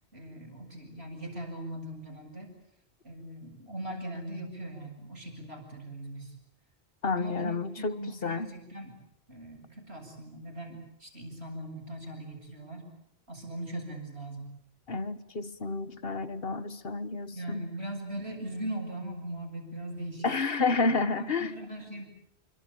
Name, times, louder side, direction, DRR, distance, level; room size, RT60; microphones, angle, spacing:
voice 1, 0.1-2.6 3.0-6.3 7.1-9.0 9.3-12.9 13.3-14.4 17.3-20.3 20.8-22.1, right 1 dB, 70° right, 8.2 m, -40 dB
voice 2, 7.0-8.0 8.2-8.5 14.9-17.7 20.2-21.5, left 3 dB, 60° left, 1.7 m, -30 dB
28.0 x 25.0 x 8.6 m
omnidirectional pair, 1.1 m